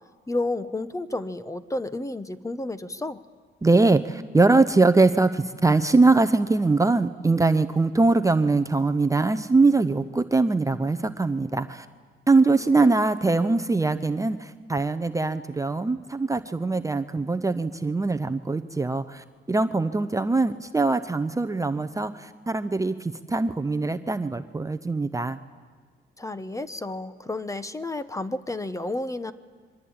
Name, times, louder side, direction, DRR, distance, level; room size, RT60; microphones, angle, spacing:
voice 1, 0.3-3.2 12.7-12.9 26.2-29.3, left 2 dB, 15° left, 13 dB, 1.0 m, -31 dB
voice 2, 3.6-11.9 12.3-25.4, right 3 dB, 15° right, 10 dB, 0.8 m, -22 dB
27.0 x 23.5 x 8.8 m, 1.5 s
cardioid pair, 90°, 20 cm